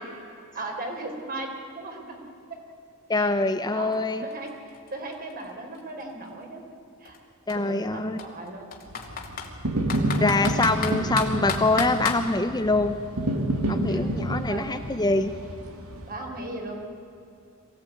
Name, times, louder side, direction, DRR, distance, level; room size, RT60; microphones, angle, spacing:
voice 1, 0.5-2.2 3.1-3.3 3.7-3.9 4.2-4.5 4.9-6.6 7.0-7.2 7.6-8.7 10.1-10.7 13.9-14.7 16.0-16.7, right 2 dB, 40° right, 1 dB, 4.1 m, -37 dB
voice 2, 3.1-4.2 7.5-8.2 10.2-13.0 13.7-15.3, left 2 dB, 20° left, 8 dB, 0.7 m, -24 dB
Computer keyboard, 3.9-4.0 4.3-6.3 7.0-7.2 7.5-7.6 8.2-9.5 9.9-12.2, left 5 dB, 45° left, 2.7 m, -32 dB
sound 1, 8.9-16.1, right 1 dB, 75° right, 2.6 m, -29 dB
23.5 x 17.0 x 9.5 m, 2.6 s
head